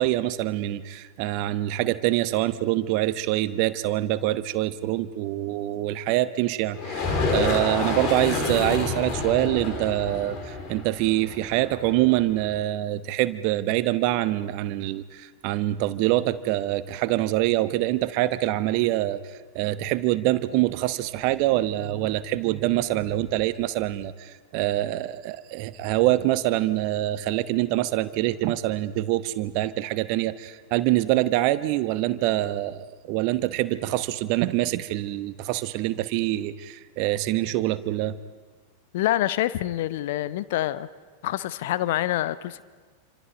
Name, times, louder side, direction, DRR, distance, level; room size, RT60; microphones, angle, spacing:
voice 1, 0.0-19.2 19.5-38.2, right 15 dB, 45° right, 14 dB, 0.9 m, -25 dB
sound 1, 6.7-12.4, left 3 dB, 35° left, 4.0 m, -29 dB
voice 2, 38.9-40.9 41.2-42.6, left 14 dB, 55° left, 15 dB, 0.8 m, -26 dB
28.0 x 26.0 x 5.2 m, 1.5 s
figure-of-eight pair, 90°, 0 cm